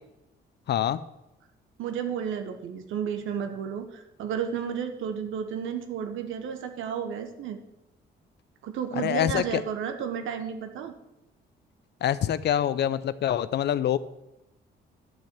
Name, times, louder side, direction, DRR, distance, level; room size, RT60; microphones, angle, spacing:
voice 1, 0.7-1.0 9.0-9.6 12.0-14.0, left 10 dB, 60° left, 15 dB, 0.5 m, -25 dB
voice 2, 1.8-7.6 8.6-10.9, right 7 dB, 85° right, 7 dB, 1.0 m, -32 dB
11.0 x 4.3 x 7.9 m, 0.93 s
cardioid pair, 90°, 20 cm